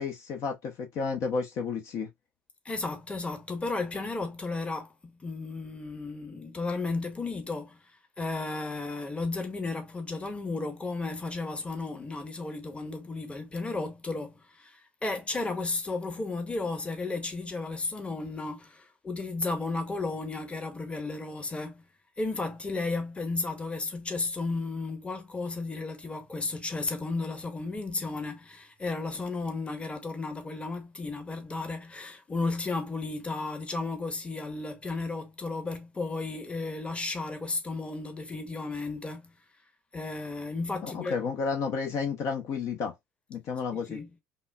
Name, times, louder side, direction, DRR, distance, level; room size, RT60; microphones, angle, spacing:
voice 1, 0.0-2.1 40.8-42.9 43.3-44.0, left 5 dB, 50° left, 0.8 m, -31 dB
voice 2, 2.6-4.9 5.2-7.8 8.2-21.8 22.2-39.3 39.9-41.2 43.7-44.1, left 3 dB, 20° left, 1.0 m, -34 dB
5.3 x 2.1 x 2.2 m
hypercardioid pair, 65°, 6 cm